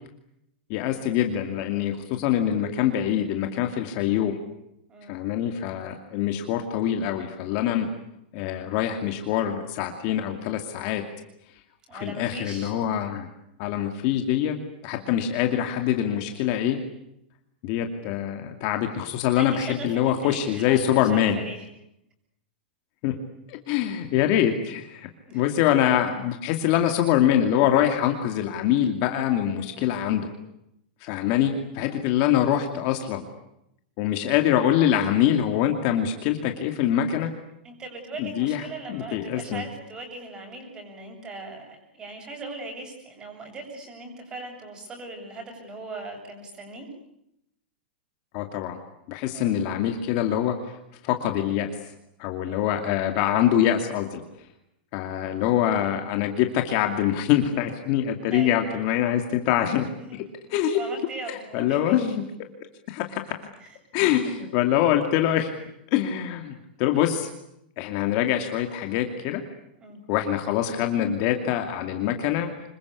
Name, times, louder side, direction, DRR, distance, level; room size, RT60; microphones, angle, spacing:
voice 1, 0.7-4.4 5.1-7.9 8.3-11.0 12.0-13.3 13.6-14.5 14.8-16.8 17.6-21.4 23.0-23.1 23.5-30.3 31.0-33.2 34.0-37.3 38.2-38.6 38.9-39.6 48.3-48.8 49.1-50.8 51.0-51.7 52.2-54.2 54.9-60.2 60.5-60.8 61.3-62.2 62.9-63.3 63.9-65.5 65.9-67.3 67.8-69.4 70.1-72.5, left 10 dB, 35° left, 5 dB, 2.5 m, -24 dB
voice 2, 4.9-5.3 7.6-7.8 11.9-12.7 14.9-15.2 19.3-21.7 25.2-25.5 29.6-29.9 37.6-46.9 49.3-49.6 52.5-52.7 58.3-58.6 60.0-60.2 60.7-62.0 63.6-63.8 64.2-64.3 69.8-70.0, right 3 dB, 15° right, 4 dB, 7.7 m, -39 dB
26.5 x 22.5 x 8.4 m, 0.80 s
supercardioid pair, 170°, 5 cm